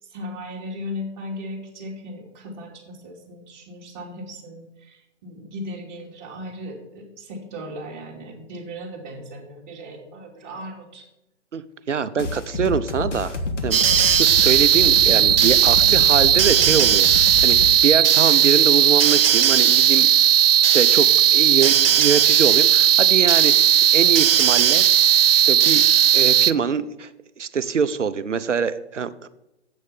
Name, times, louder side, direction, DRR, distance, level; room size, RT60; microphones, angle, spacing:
voice 1, 0.0-11.0 11.9-12.1, left 1 dB, 40° right, -1 dB, 3.0 m, -37 dB
voice 2, 11.9-13.4 13.6-20.1 20.7-24.9 25.5-25.8 26.1-27.1 27.4-29.3, right 6 dB, 80° right, 13 dB, 0.8 m, -24 dB
sound 1, 12.2-17.7, left 3 dB, 80° left, 1.5 m, -28 dB
sound 2, 13.7-26.5, right 10 dB, 55° right, 0.4 m, -16 dB
8.0 x 6.4 x 6.9 m, 0.91 s
figure-of-eight pair, 130°, 36 cm